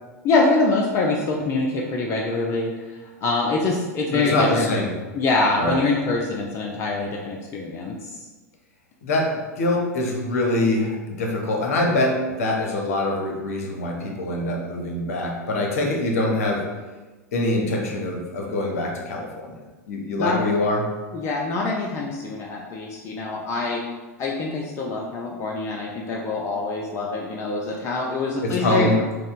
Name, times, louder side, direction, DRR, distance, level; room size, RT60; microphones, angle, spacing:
voice 1, 0.2-2.7 3.2-4.7 5.1-8.2 20.2-20.6 21.1-23.8 24.2-28.9, left 3 dB, 30° left, -1 dB, 0.4 m, -24 dB
voice 2, 4.1-4.9 5.6-5.8 9.0-16.6 17.3-19.6 19.9-20.8 28.4-28.9, left 1 dB, 60° left, 0 dB, 0.7 m, -24 dB
5.0 x 2.0 x 2.4 m, 1.2 s
figure-of-eight pair, 90°, 9 cm